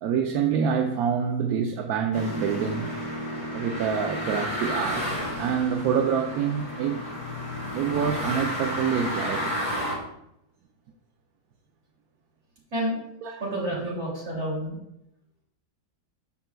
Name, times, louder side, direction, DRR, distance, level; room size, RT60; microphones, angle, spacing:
voice 1, 0.0-2.9 3.5-5.1 5.4-7.0 7.7-9.6 13.2-13.4, right 7 dB, 70° right, 4 dB, 1.0 m, -26 dB
sound 1, 2.1-9.9, equal, 45° left, 2.6 m, -32 dB
voice 2, 13.4-14.7, right 1 dB, 40° right, -4 dB, 2.8 m, -29 dB
13.0 x 4.4 x 2.2 m, 0.81 s
omnidirectional pair, 1.8 m